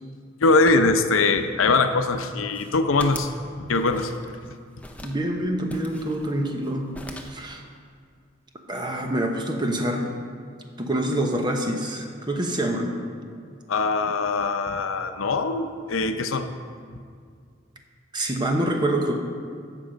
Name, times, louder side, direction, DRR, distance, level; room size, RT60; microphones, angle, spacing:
voice 1, 0.4-3.3 3.6-4.1 13.7-16.5, left 3 dB, 90° left, 8 dB, 0.6 m, -22 dB
sound 1, 2.3-3.4 3.7-4.5 4.8-5.2 5.7-6.7 6.9-7.5, left 2 dB, 5° left, 0.6 m, -40 dB
voice 2, 5.0-6.9 7.2-7.6 8.7-10.1 10.8-12.9 18.1-19.2, right 1 dB, 20° right, 3 dB, 1.0 m, -26 dB
15.0 x 6.1 x 5.2 m, 2.2 s
head